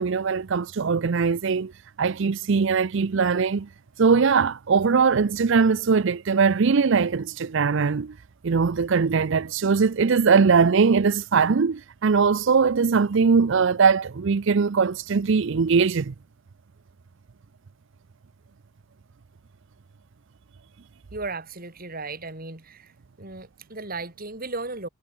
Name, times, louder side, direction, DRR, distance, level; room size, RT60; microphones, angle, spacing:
voice 1, 0.0-1.7 2.0-3.7 4.0-8.1 8.4-16.1, right 5 dB, 60° right, 0.5 m, -21 dB
voice 2, 21.1-22.9 23.2-24.9, right 3 dB, 45° right, 4.9 m, -35 dB
head